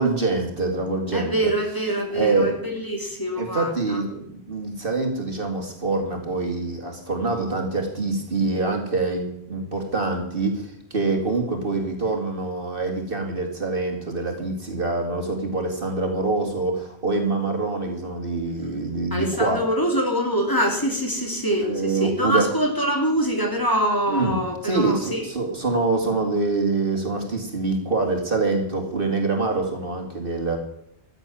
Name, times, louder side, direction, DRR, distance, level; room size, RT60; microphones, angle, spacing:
voice 1, 0.0-1.5 2.1-2.5 3.4-19.6 21.6-22.5 24.1-30.6, right 3 dB, 55° right, 2 dB, 2.6 m, -25 dB
voice 2, 1.1-4.0 19.1-25.2, equal, 20° left, 1 dB, 3.2 m, -24 dB
14.5 x 7.9 x 9.1 m, 0.73 s
omnidirectional pair, 1.1 m